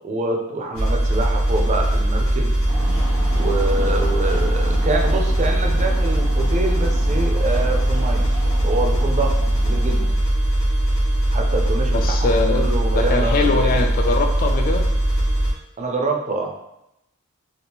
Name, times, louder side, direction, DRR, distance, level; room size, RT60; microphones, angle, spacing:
voice 1, 0.0-2.5 3.3-8.3 8.6-10.1 11.3-13.8 15.8-16.5, right 2 dB, 35° right, 2 dB, 0.4 m, -26 dB
sound 1, 0.7-15.5, right 1 dB, 70° left, 0.8 m, -20 dB
sound 2, 2.7-10.0, right 1 dB, 90° right, 0.9 m, -35 dB
voice 2, 11.9-14.9, left 3 dB, 40° left, 4 dB, 0.3 m, -22 dB
2.8 x 2.4 x 3.5 m, 0.85 s
head